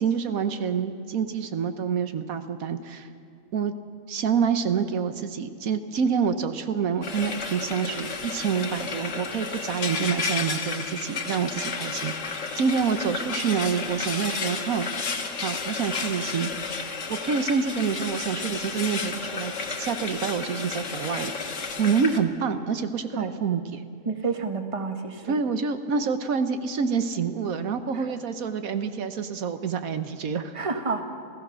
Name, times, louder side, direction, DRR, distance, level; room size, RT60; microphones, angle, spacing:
voice 1, 0.0-3.1 3.5-3.7 4.1-14.9 15.4-16.5 17.1-21.3 21.8-23.8 25.2-30.5, right 6 dB, 80° right, 9 dB, 1.4 m, -27 dB
Frying (food), 7.0-22.2, left 4 dB, 60° left, 1.7 m, -32 dB
voice 2, 24.0-25.4 27.9-28.0 30.5-31.0, right 4 dB, 25° right, 6 dB, 1.3 m, -29 dB
29.0 x 15.0 x 6.2 m, 2.4 s
omnidirectional pair, 1.4 m